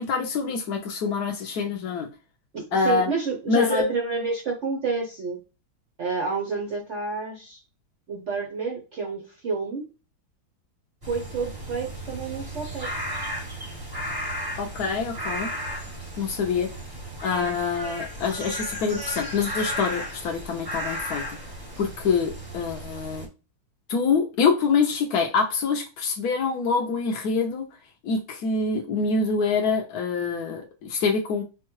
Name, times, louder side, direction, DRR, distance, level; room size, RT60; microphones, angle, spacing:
voice 1, 0.0-2.1 2.7-3.1 3.5-3.8 14.6-15.5 16.2-16.7 17.2-21.2 21.8-23.3 23.9-27.7 28.0-31.4, left 5 dB, 80° left, 2 dB, 0.8 m, -25 dB
voice 2, 2.5-5.4 6.0-7.6 8.1-9.8 11.1-12.9, right 4 dB, 75° right, 0 dB, 0.6 m, -29 dB
sound 1, 11.0-23.3, equal, 35° right, 0.3 m, -34 dB
4.6 x 2.2 x 3.0 m, 0.31 s
omnidirectional pair, 2.3 m